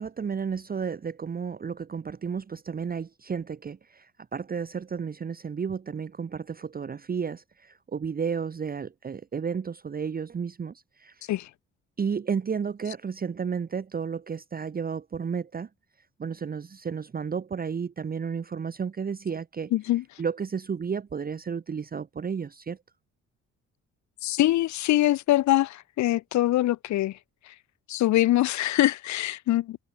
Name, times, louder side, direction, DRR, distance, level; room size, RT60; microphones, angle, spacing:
voice 1, 0.0-11.3 12.0-15.7 16.2-19.7 20.2-22.8, right 6 dB, 30° right, 0.9 m, -32 dB
voice 2, 19.7-20.0 24.2-27.2 27.9-29.8, left 15 dB, 70° left, 0.6 m, -23 dB
cardioid pair, 90°, 30 cm